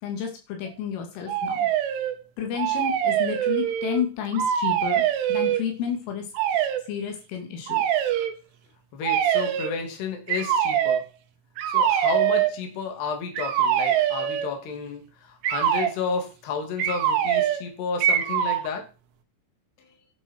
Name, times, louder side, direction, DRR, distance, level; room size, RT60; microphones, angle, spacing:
voice 1, 0.0-1.7 2.4-5.0 5.3-6.3 6.9-7.8 19.8-19.9, left 8 dB, 85° left, 3 dB, 5.1 m, -31 dB
sound 1, 1.3-2.2 2.5-4.0 4.3-5.6 6.3-6.8 7.7-8.3 9.0-9.8 10.3-11.0 11.6-12.5 13.4-14.6 15.4-15.9 16.8-17.7 18.0-18.7, right 10 dB, 80° right, 3.9 m, -23 dB
voice 2, 8.9-11.0 11.7-18.8, left 5 dB, 60° left, 4 dB, 4.7 m, -32 dB
11.5 x 11.0 x 4.7 m, 0.32 s
omnidirectional pair, 5.6 m